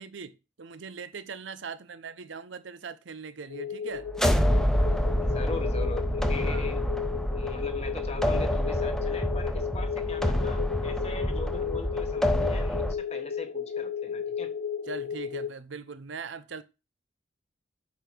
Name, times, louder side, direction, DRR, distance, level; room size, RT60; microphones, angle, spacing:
voice 1, 0.0-4.1 6.4-6.6 14.9-16.6, right 5 dB, 70° right, 0.7 m, -40 dB
sound 1, 3.5-15.5, left 7 dB, 80° left, 0.6 m, -34 dB
sound 2, 4.1-12.9, equal, 5° left, 0.5 m, -27 dB
voice 2, 5.2-6.8 7.3-14.5, left 3 dB, 30° left, 1.1 m, -41 dB
8.2 x 2.8 x 6.0 m
head